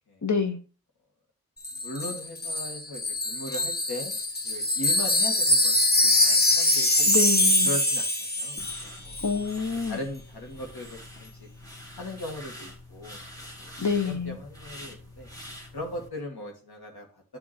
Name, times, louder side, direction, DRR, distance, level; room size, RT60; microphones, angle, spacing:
voice 1, 0.2-0.6 7.1-7.7 9.2-10.0 13.8-14.4, left 5 dB, 50° left, 1.2 m, -27 dB
Wind chime, 1.6-8.9 9.1-9.3, left 1 dB, 25° left, 1.2 m, -23 dB
voice 2, 1.7-4.2 4.4-7.0 7.6-9.2 9.9-11.5 12.0-13.7 14.0-15.3 15.7-17.4, left 1 dB, 90° left, 2.3 m, -39 dB
sound 1, 8.6-16.1, left 1 dB, 10° left, 1.9 m, -45 dB
9.5 x 3.7 x 4.3 m
wide cardioid pair, 75°, 37 cm